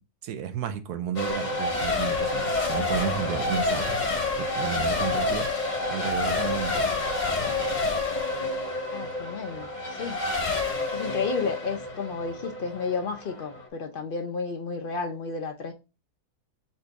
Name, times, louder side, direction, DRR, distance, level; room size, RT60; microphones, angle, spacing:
voice 1, 0.2-4.1 4.4-5.5 5.9-6.8, right 9 dB, 85° right, 9 dB, 1.2 m, -32 dB
Race car auto racing / Accelerating revving vroom / Mechanisms, 1.2-13.7, left 3 dB, 35° left, 0.9 m, -28 dB
voice 2, 8.9-10.2 10.9-15.7, left 5 dB, 65° left, 4 dB, 0.5 m, -32 dB
4.2 x 2.6 x 4.5 m, 0.29 s
omnidirectional pair, 1.6 m